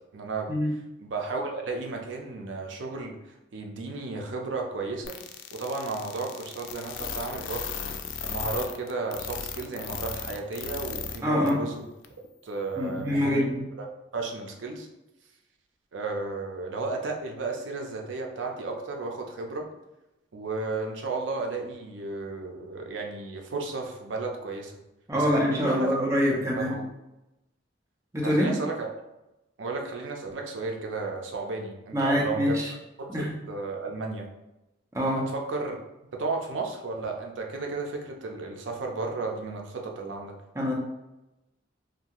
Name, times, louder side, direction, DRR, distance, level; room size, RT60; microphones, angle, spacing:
voice 1, 0.1-0.5 1.0-3.2 3.5-5.2 5.5-7.7 8.2-11.9 12.4-13.4 13.8-14.9 15.9-19.7 20.3-24.7 25.1-26.0 26.3-26.9 28.2-28.9 29.6-34.3 35.1-35.8 36.1-40.4, right 3 dB, 80° right, 2 dB, 0.5 m, -33 dB
sound 1, 5.0-11.2 11.5-11.6 12.0-12.1, left 7 dB, 85° left, 0.3 m, -35 dB
voice 2, 11.2-11.6 12.8-13.6 25.1-26.7 28.1-28.5 31.9-32.7 33.1-33.3 34.9-35.2 40.6-40.7, equal, 15° right, -3 dB, 0.5 m, -25 dB
2.6 x 2.3 x 2.9 m, 0.96 s
head